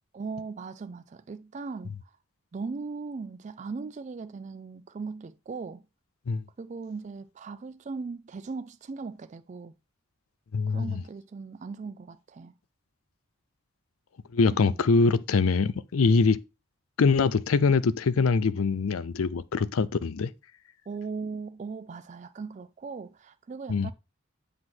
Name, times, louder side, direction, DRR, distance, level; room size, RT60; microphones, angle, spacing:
voice 1, 0.1-2.1 2.5-5.8 6.6-9.7 10.7-12.5 14.5-14.8 20.9-23.9, right 4 dB, 35° right, 0.3 m, -38 dB
voice 2, 10.5-11.0 14.3-16.4 17.0-20.3 23.7-23.9, left 4 dB, 85° left, 0.5 m, -23 dB
7.6 x 3.0 x 6.1 m
head